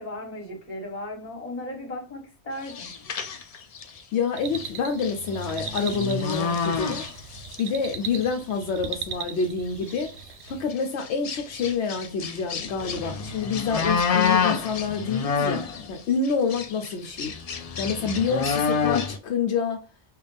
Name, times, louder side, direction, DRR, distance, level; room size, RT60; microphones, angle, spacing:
voice 1, 0.0-2.9, left 1 dB, 35° left, 1.5 m, -36 dB
sound 1, 2.6-4.0 4.5-4.7 5.0-7.6 7.8-8.3 8.9-9.0 9.4-9.5 9.8-10.1 10.7-15.9 16.2-19.2, left 6 dB, 65° left, 0.3 m, -28 dB
voice 2, 4.1-7.0 7.6-10.1 10.5-15.6 15.9-17.3 17.8-19.8, left 5 dB, 80° left, 0.9 m, -27 dB
sound 2, 4.4-10.7, right 7 dB, 75° right, 0.8 m, -39 dB
3.4 x 2.4 x 3.9 m
omnidirectional pair, 1.1 m